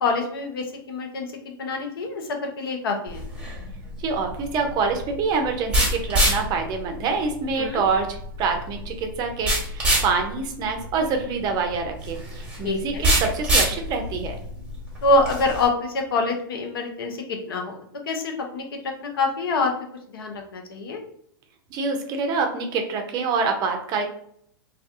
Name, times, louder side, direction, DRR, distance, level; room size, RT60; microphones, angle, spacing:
voice 1, 0.0-3.2 7.6-7.8 12.6-13.0 15.0-17.8 18.1-18.7 19.0-19.8 20.1-21.0, left 3 dB, 70° left, 3 dB, 0.6 m, -25 dB
sound 1, 3.1-15.7, right 1 dB, 10° right, 1.1 m, -26 dB
voice 2, 4.0-14.3 21.7-24.0, right 4 dB, 35° right, 4 dB, 0.5 m, -26 dB
2.3 x 2.2 x 2.6 m, 0.67 s
hypercardioid pair, 110°, 12 cm